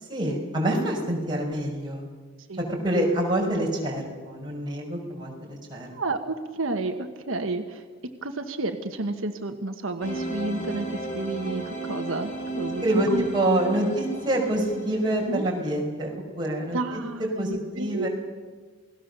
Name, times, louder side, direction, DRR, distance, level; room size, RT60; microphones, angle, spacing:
voice 1, 0.1-2.1 2.6-5.9 12.8-18.1, right 1 dB, 20° right, -2 dB, 5.5 m, -26 dB
voice 2, 5.9-7.8 8.2-13.2 15.3-15.5 16.7-18.1, right 2 dB, 85° right, 5 dB, 1.3 m, -31 dB
sound 1, 10.0-15.7, right 2 dB, 35° left, 3.8 m, -34 dB
28.5 x 19.5 x 6.8 m, 1.5 s
head